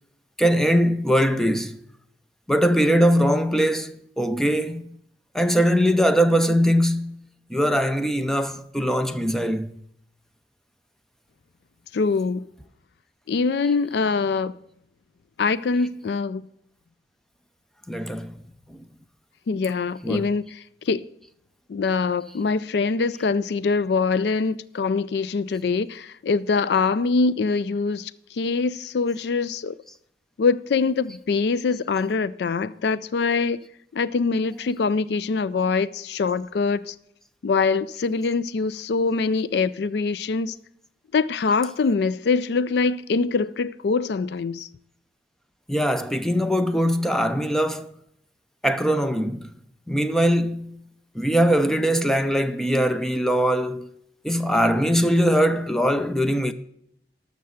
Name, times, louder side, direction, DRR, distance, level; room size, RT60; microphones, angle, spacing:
voice 1, 0.4-1.8 2.5-4.8 5.3-7.2 7.5-9.8 17.9-18.3 18.7-18.8 20.0-20.3 45.7-47.9 48.6-49.5 49.9-50.8 51.1-54.0 54.2-56.5, equal, 5° left, 0.6 m, -21 dB
voice 2, 11.9-12.5 13.3-14.6 15.4-16.5 19.5-21.0 21.7-29.7 30.4-33.6 33.9-37.0 37.4-40.6 41.1-44.7, left 4 dB, 65° left, 0.4 m, -24 dB
12.5 x 6.7 x 6.5 m
head